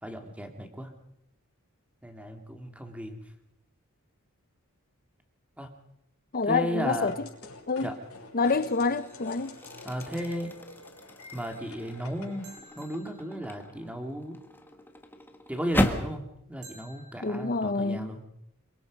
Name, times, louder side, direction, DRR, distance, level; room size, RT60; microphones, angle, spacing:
voice 1, 0.0-0.9 2.0-3.2 5.6-5.7 6.4-7.1 7.8-7.9 9.8-10.5 11.3-12.5 12.8-14.4 15.5-18.3, equal, 5° right, 2.5 m, -35 dB
voice 2, 6.3-7.1 7.7-7.9 8.3-9.6 17.2-18.1, left 4 dB, 40° left, 0.9 m, -27 dB
sound 1, 7.1-12.6, left 3 dB, 75° left, 6.5 m, -48 dB
sound 2, 7.3-7.6 8.2-16.2, left 1 dB, 10° left, 1.7 m, -36 dB
sound 3, 8.7-10.2 12.4-14.1 16.6-17.7, right 2 dB, 85° right, 6.1 m, -55 dB
27.0 x 23.5 x 5.3 m
head